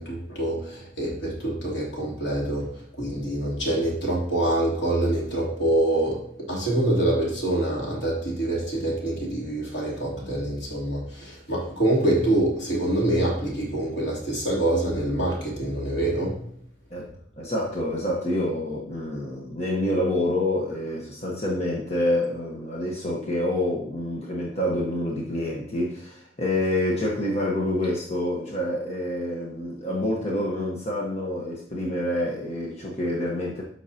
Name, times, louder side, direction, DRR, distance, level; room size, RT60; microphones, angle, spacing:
voice 1, 0.0-16.4, right 1 dB, 75° left, -4 dB, 3.1 m, -25 dB
voice 2, 17.4-33.6, left 1 dB, 35° left, -3 dB, 1.3 m, -27 dB
12.5 x 5.8 x 2.9 m, 0.64 s
head